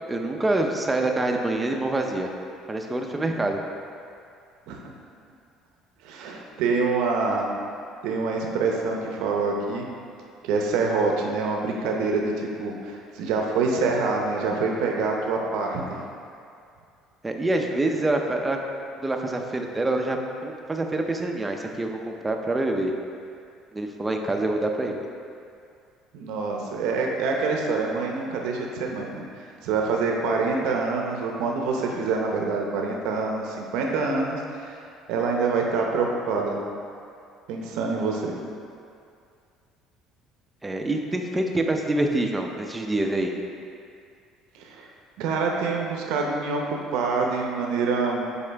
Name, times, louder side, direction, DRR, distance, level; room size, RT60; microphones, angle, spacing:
voice 1, 0.1-2.3 2.7-3.6 17.2-18.6 19.0-22.9 23.7-25.1 40.6-43.3, right 2 dB, 15° right, 3 dB, 0.5 m, -26 dB
voice 2, 6.0-7.5 8.0-9.9 10.4-16.0 26.1-29.2 29.6-34.8 35.1-36.6 37.5-38.3 44.5-44.9 45.2-48.3, right 4 dB, 75° right, 0 dB, 0.7 m, -26 dB
7.0 x 4.3 x 3.4 m, 2.4 s
cardioid pair, 120°, 0 cm